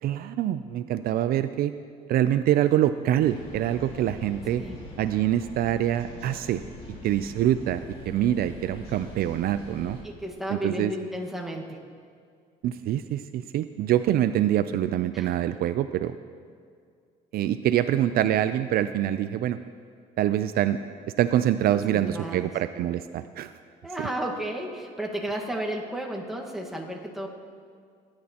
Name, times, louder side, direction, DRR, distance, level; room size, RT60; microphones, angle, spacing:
voice 1, 0.0-1.7 2.1-4.6 5.0-6.6 6.9-7.8 8.1-10.0 10.5-10.9 12.6-16.2 17.3-19.6 20.2-20.8 21.1-23.5 24.0-24.1, right 12 dB, 65° right, 11 dB, 0.4 m, -25 dB
sound 1, 3.2-10.0, left 2 dB, 35° left, 2.5 m, -43 dB
voice 2, 10.0-11.8 15.1-15.3 21.7-22.5 23.8-27.3, right 1 dB, ahead, -1 dB, 1.5 m, -33 dB
18.0 x 10.5 x 2.9 m, 2.2 s
cardioid pair, 110°, 17 cm